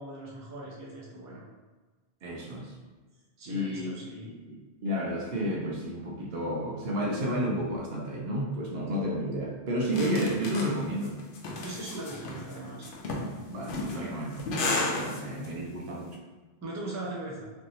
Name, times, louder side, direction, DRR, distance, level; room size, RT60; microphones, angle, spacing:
voice 1, 0.0-1.4 3.4-4.3 11.6-12.9 15.0-15.2 16.6-17.5, right 2 dB, 20° right, -5 dB, 0.5 m, -40 dB
voice 2, 2.2-2.7 3.5-11.2 13.5-16.2, equal, 75° right, -2 dB, 0.9 m, -32 dB
sound 1, 9.9-15.5, left 2 dB, 60° left, 0.7 m, -33 dB
3.2 x 2.6 x 2.6 m, 1.3 s
omnidirectional pair, 1.1 m